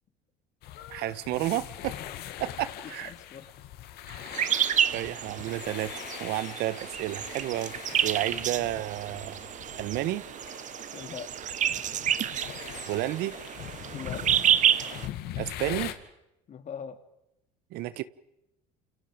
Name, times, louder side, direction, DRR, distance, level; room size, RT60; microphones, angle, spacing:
sound 1, 0.6-15.9, left 12 dB, 70° left, 2.3 m, -42 dB
voice 1, 0.9-2.0 2.4-3.1 4.1-4.5 4.9-9.4 9.8-10.2 12.9-13.3 15.4-15.9 17.7-18.0, right 15 dB, 70° right, 15 dB, 1.3 m, -31 dB
voice 2, 2.8-3.5 10.9-11.3 13.9-14.3 16.5-17.0, left 7 dB, 45° left, 8 dB, 2.9 m, -41 dB
sound 2, 4.3-15.1, right 10 dB, 45° right, 1.2 m, -29 dB
29.0 x 28.0 x 5.2 m, 0.86 s
supercardioid pair, 95°, 17 cm